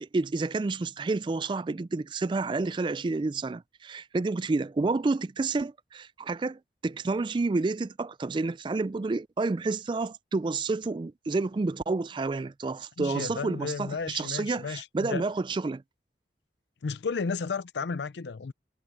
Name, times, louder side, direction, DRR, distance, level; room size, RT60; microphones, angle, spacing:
voice 1, 0.0-15.8, right 3 dB, 25° right, 0.3 m, -29 dB
voice 2, 13.0-15.2 16.8-18.5, left 5 dB, 80° left, 0.5 m, -33 dB
head